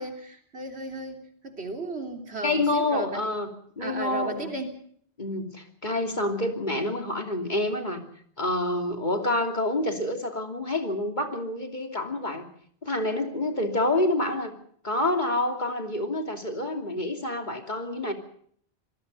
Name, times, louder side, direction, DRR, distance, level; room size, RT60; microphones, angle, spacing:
voice 1, 0.0-3.2 3.8-4.8, right 2 dB, 85° right, 4 dB, 3.6 m, -35 dB
voice 2, 2.4-3.5 3.8-4.6 5.2-8.0 8.4-12.5 12.8-14.5 14.8-18.1, left 1 dB, 45° left, 4 dB, 3.0 m, -28 dB
27.0 x 19.0 x 5.4 m, 0.62 s
omnidirectional pair, 1.1 m